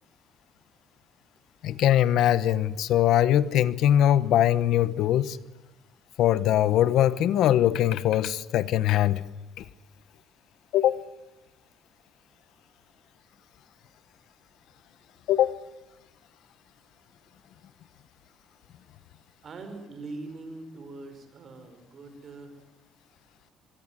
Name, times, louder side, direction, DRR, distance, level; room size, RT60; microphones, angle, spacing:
voice 1, 1.6-5.4 6.2-9.2 9.6-9.7 10.7-11.0 15.3-15.6, left 11 dB, 65° left, 1.0 m, -22 dB
voice 2, 19.4-22.6, right 3 dB, 35° right, 5.6 m, -42 dB
25.0 x 22.0 x 9.0 m
cardioid pair, 170°, 0 cm